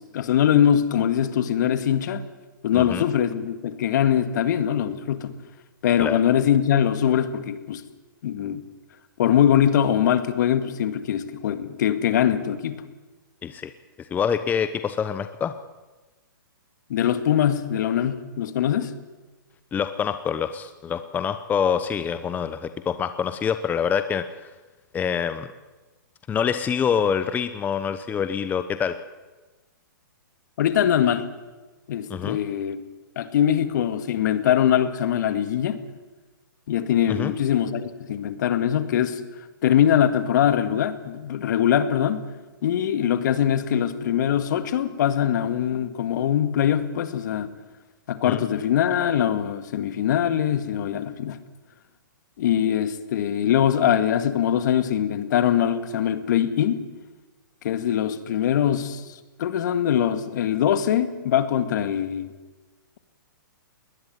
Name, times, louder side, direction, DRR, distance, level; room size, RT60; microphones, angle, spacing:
voice 1, 0.0-2.2 2.6-5.3 5.8-7.8 8.2-8.6 9.2-12.8 16.9-18.9 30.6-31.2 31.9-32.8 33.2-35.8 36.7-39.2 39.6-42.3 42.6-47.5 48.1-51.4 52.4-56.8 57.6-59.1 59.4-62.3, left 9 dB, 60° left, 11 dB, 2.1 m, -22 dB
voice 2, 2.7-3.1 6.0-6.2 13.4-13.7 14.0-15.5 19.7-24.5 24.9-25.5 26.3-29.0 32.1-32.4 37.1-37.3 48.2-48.4, left 7 dB, 15° left, 11 dB, 0.9 m, -26 dB
21.0 x 19.5 x 9.4 m, 1.2 s
hypercardioid pair, 135°, 11 cm